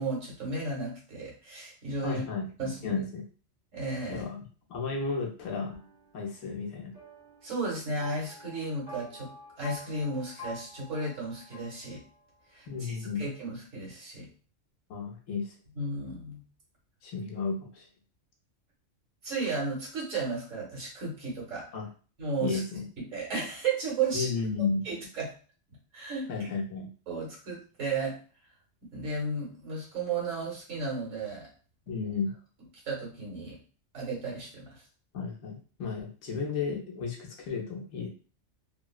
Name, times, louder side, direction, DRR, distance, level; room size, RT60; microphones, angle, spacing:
voice 1, 0.0-2.2 2.6-3.0 3.7-4.3 7.4-9.3 9.6-12.0 12.5-14.3 15.8-16.4 19.2-21.6 22.2-22.6 23.0-24.3 24.8-25.3 25.9-26.3 27.1-28.2 28.9-31.5 32.8-33.6 33.9-34.8 36.3-36.4, right 3 dB, 80° right, -4 dB, 1.6 m, -34 dB
voice 2, 2.0-3.2 4.1-4.4 4.7-5.7 6.1-6.9 12.7-13.3 14.9-15.5 17.0-17.9 21.7-21.9 22.4-22.8 24.1-24.8 26.3-26.9 31.9-32.3 35.1-38.1, left 4 dB, 80° left, 0 dB, 1.1 m, -33 dB
sound 1, 5.5-12.5, left 1 dB, 50° right, 1.6 m, -49 dB
3.5 x 2.0 x 2.3 m, 0.39 s
omnidirectional pair, 1.3 m